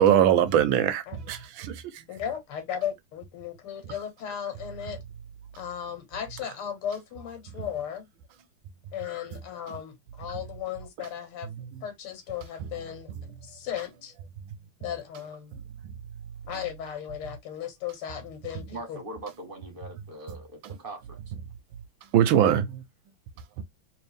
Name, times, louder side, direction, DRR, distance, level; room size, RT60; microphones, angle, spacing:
voice 1, 0.0-1.8 22.1-22.8 23.6-23.7, right 10 dB, 75° right, 1.3 m, -21 dB
voice 2, 2.1-5.0 5.6-8.1 8.9-11.5 11.8-13.1 13.4-14.1 14.8-15.5 16.5-19.0, left 9 dB, 85° left, 2.0 m, -36 dB
voice 3, 18.7-21.2, right 2 dB, 30° right, 1.1 m, -41 dB
3.4 x 3.0 x 3.3 m
omnidirectional pair, 2.3 m